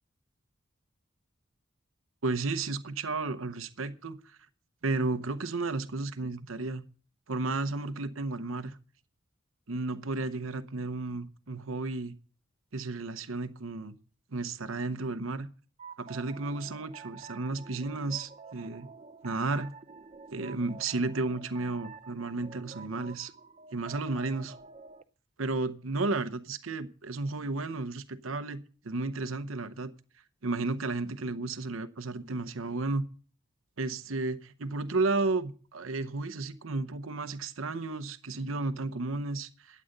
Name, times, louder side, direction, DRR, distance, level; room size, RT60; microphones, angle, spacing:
voice 1, 2.2-4.4 4.8-6.9 7.3-8.8 9.7-12.2 12.7-14.0 14.3-15.5 16.0-18.9 19.2-19.7 20.3-23.3 23.7-24.6 25.4-29.9 30.4-33.1 33.8-39.8, right 3 dB, 90° right, 0.9 m, -33 dB
sound 1, 15.8-25.0, right 4 dB, 35° right, 0.6 m, -49 dB
12.5 x 8.5 x 6.6 m
head